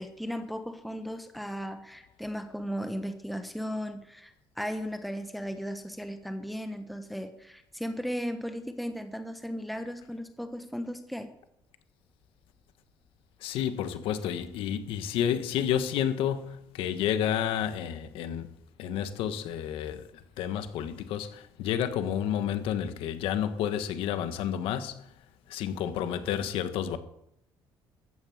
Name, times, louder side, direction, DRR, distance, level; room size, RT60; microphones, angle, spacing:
voice 1, 0.0-11.3, equal, ahead, 1.1 m, -36 dB
voice 2, 13.4-18.5 18.8-25.1 25.5-27.0, left 9 dB, 90° left, 1.4 m, -30 dB
14.5 x 9.4 x 7.8 m
cardioid pair, 160°, 9 cm